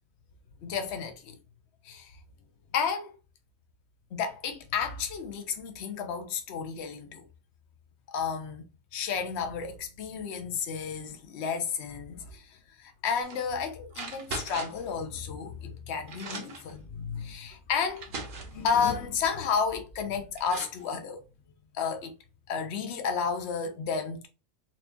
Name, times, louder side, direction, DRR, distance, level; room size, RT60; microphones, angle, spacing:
voice 1, 0.6-1.4 1.8-2.1 2.7-3.1 4.1-7.2 8.1-8.6 8.9-18.1 18.5-21.2 21.7-22.1 22.5-24.3, left 6 dB, 60° left, 0.9 m, -32 dB
sound 1, 13.2-13.5 13.9-14.9 15.7-15.8 16.1-16.7 17.5-17.6 18.0-18.6 19.9-20.0 20.4-20.8, right 3 dB, 45° right, 0.9 m, -39 dB
4.3 x 2.4 x 2.7 m
omnidirectional pair, 1.4 m